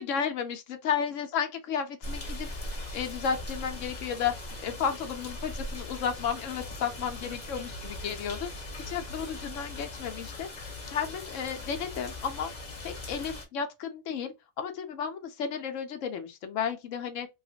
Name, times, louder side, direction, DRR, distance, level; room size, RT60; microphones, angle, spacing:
voice 1, 0.0-8.5 8.9-12.5 12.8-17.3, left 7 dB, 65° left, 1.0 m, -33 dB
sound 1, 2.0-13.5, left 2 dB, 35° left, 1.0 m, -40 dB
3.1 x 2.5 x 2.7 m
omnidirectional pair, 1.5 m